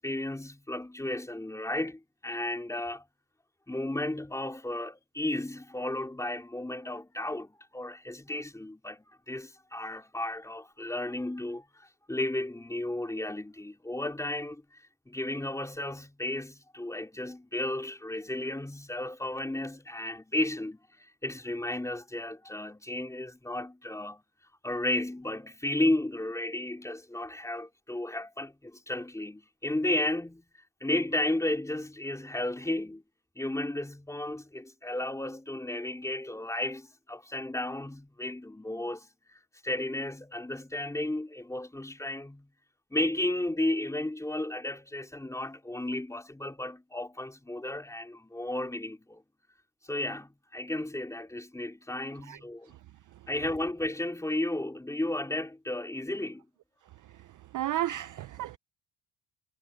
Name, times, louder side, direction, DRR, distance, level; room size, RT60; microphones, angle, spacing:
voice 1, 0.0-3.0 3.7-11.6 12.1-14.6 15.1-20.8 21.2-24.2 24.6-30.4 30.8-33.0 33.4-39.1 39.6-42.5 42.9-49.2 49.9-52.7 53.3-56.5, left 1 dB, 5° left, 3.7 m, -33 dB
voice 2, 57.0-58.6, right 13 dB, 40° right, 0.6 m, -34 dB
cardioid pair, 140°, 47 cm